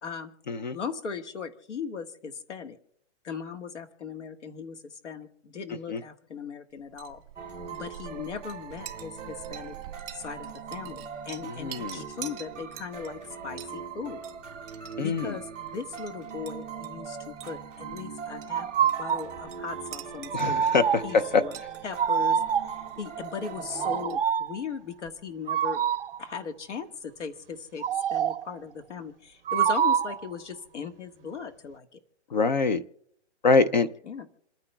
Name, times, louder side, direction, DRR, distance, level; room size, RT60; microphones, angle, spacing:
voice 1, 0.0-0.3 0.7-2.8 3.2-7.2 7.7-9.7 10.1-14.2 14.6-14.7 15.0-20.7 21.0-21.6 21.8-25.8 26.2-27.8 28.1-32.0 34.1-34.2, left 6 dB, 85° left, 6 dB, 1.6 m, -38 dB
Chink clink, 6.8-24.6, right 10 dB, 25° right, 1.6 m, -48 dB
sound 1, 7.4-24.0, right 7 dB, 5° right, 0.6 m, -41 dB
voice 2, 11.4-12.0 15.0-15.4 20.3-21.0 21.3-21.4 32.3-32.8 33.4-33.9, left 4 dB, 40° left, 11 dB, 0.5 m, -24 dB
sound 2, 18.5-19.3 20.3-21.2 22.0-22.9 23.7-24.6 25.5-26.2 27.8-28.5 29.5-30.3, right 8 dB, 55° right, 0.6 m, -26 dB
28.5 x 9.8 x 2.3 m, 0.72 s
hypercardioid pair, 170°, 35 cm